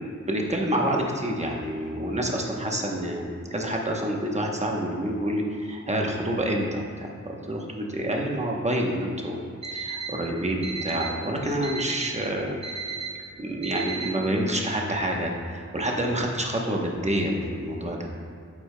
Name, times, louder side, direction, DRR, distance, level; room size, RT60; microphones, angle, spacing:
voice 1, 0.0-9.4 9.7-12.6 13.4-18.1, right 1 dB, 20° right, -1 dB, 0.9 m, -28 dB
Alarm, 9.6-10.1 10.6-11.1 11.6-12.1 12.6-13.1 13.6-14.1, right 6 dB, 65° right, 1.0 m, -33 dB
8.4 x 8.1 x 2.2 m, 2.3 s
wide cardioid pair, 115°, 30 cm